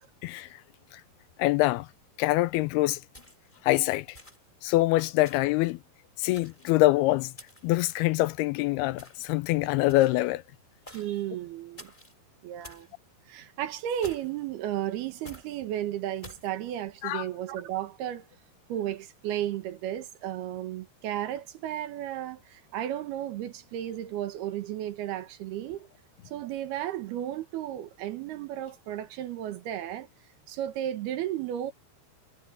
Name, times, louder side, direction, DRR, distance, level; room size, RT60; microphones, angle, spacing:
voice 1, 0.2-0.6 0.9-1.0 1.4-1.9 2.2-3.0 3.6-4.2 4.6-5.8 6.2-7.3 7.6-10.4 17.0-17.3, left 18 dB, 80° left, 2.4 m, -25 dB
sound 1, 3.1-3.6 4.1-4.6 5.2-5.6 6.2-6.8 7.4-7.8 9.0-9.3 9.9-10.3 10.9-11.2 11.8-12.1 12.6-12.9 14.0-14.5 15.2-15.5 16.2-16.5, left 1 dB, 10° left, 5.1 m, -49 dB
voice 2, 10.9-11.9 12.4-12.9 13.3-18.3 18.7-25.9 26.3-30.1 30.5-31.7, right 12 dB, 75° right, 3.3 m, -34 dB
omnidirectional pair, 4.7 m